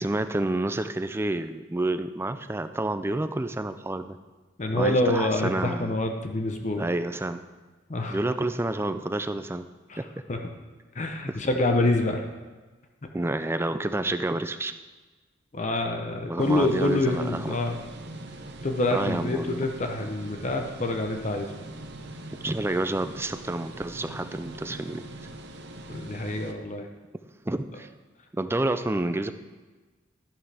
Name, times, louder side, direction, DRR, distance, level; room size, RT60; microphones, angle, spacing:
voice 1, 0.0-4.2 4.7-6.0 6.8-7.4 8.1-9.7 10.0-10.1 11.3-11.4 13.1-14.7 16.3-17.7 18.9-19.6 22.4-25.0 27.5-27.9 28.3-29.3, right 2 dB, 10° right, 10 dB, 0.4 m, -29 dB
voice 2, 4.6-6.8 7.9-8.2 9.9-10.0 10.3-10.4 10.9-12.3 15.5-17.8 18.6-21.5 25.9-26.9, left 2 dB, 35° left, 4 dB, 0.8 m, -26 dB
sound 1, 16.4-26.5, right 2 dB, 60° right, 0.9 m, -42 dB
12.0 x 11.0 x 3.4 m, 1.3 s
head